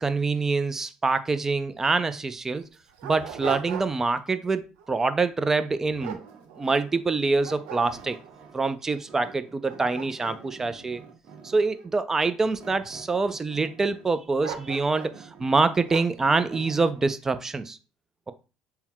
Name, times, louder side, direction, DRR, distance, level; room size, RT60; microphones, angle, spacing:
voice 1, 0.0-2.6 3.0-6.2 6.6-8.2 8.5-11.0 11.4-17.8, right 3 dB, 20° right, 0.5 m, -25 dB
Dog, 1.8-1.9 2.5-4.2 4.6-4.9 5.5-7.0 7.4-8.3 8.9-9.0 9.5-11.8 12.5-13.1 14.4-15.2 15.9-16.3, right 8 dB, 85° right, 0.7 m, -39 dB
sound 1, 5.9-8.8 9.1-11.8 12.6-14.2 14.6-17.1, right 5 dB, 55° right, 0.9 m, -48 dB
3.6 x 2.2 x 4.4 m
supercardioid pair, 90°, 2 cm